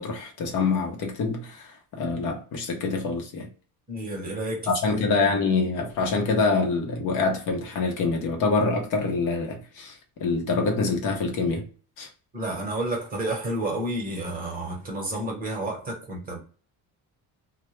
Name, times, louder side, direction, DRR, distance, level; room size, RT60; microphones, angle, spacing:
voice 1, 0.0-3.5 4.7-11.7 12.0-12.1, left 4 dB, 55° left, 0.6 m, -26 dB
voice 2, 3.9-5.3 12.3-16.4, right 1 dB, 25° right, 0.8 m, -31 dB
2.1 x 2.0 x 2.9 m
cardioid pair, 155°, 36 cm